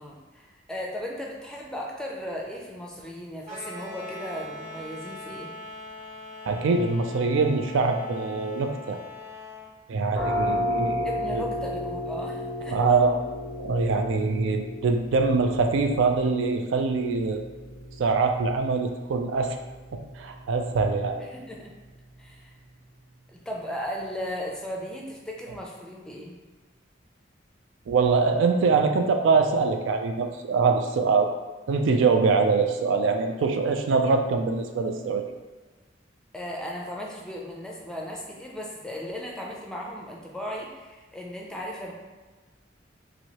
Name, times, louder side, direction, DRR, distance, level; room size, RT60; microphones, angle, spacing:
voice 1, 0.0-5.5 11.0-12.8 21.2-21.7 22.2-22.6 23.3-26.4 36.3-41.9, equal, 5° left, -2 dB, 0.4 m, -36 dB
sound 1, 3.4-9.7, left 2 dB, 30° right, 1.0 m, -41 dB
voice 2, 6.5-9.0 9.9-11.5 12.7-13.2 13.6-17.4 18.0-19.6 20.2-21.2 27.9-31.3 31.7-35.2, right 4 dB, 85° right, 5 dB, 0.3 m, -23 dB
sound 2, 10.1-21.6, left 1 dB, 65° right, 0.9 m, -34 dB
3.0 x 2.6 x 2.8 m, 1.3 s
head